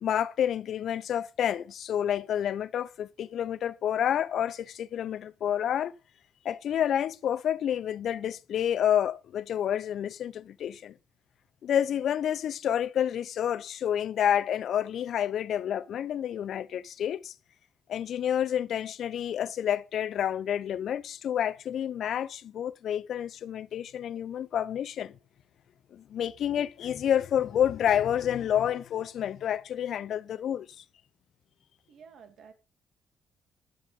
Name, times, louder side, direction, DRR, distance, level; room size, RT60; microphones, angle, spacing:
voice 1, 0.0-5.9 6.4-10.9 11.6-17.3 17.9-25.2 25.9-30.8, left 9 dB, 70° left, 0.7 m, -29 dB
voice 2, 31.9-32.5, right 6 dB, 65° right, 2.6 m, -51 dB
10.0 x 7.6 x 5.3 m
cardioid pair, 90°, 0 cm